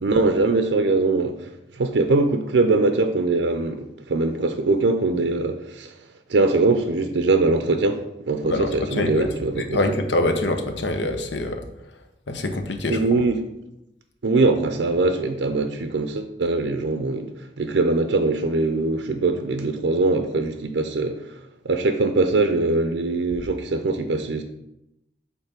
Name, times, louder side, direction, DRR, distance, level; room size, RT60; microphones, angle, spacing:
voice 1, 0.0-5.9 6.3-10.0 12.9-13.4 14.2-17.3 17.6-21.2 21.6-24.4, right 3 dB, 80° right, 0.5 m, -22 dB
voice 2, 8.5-11.6 12.3-13.2, left 2 dB, 80° left, 0.8 m, -25 dB
5.6 x 4.1 x 5.9 m
head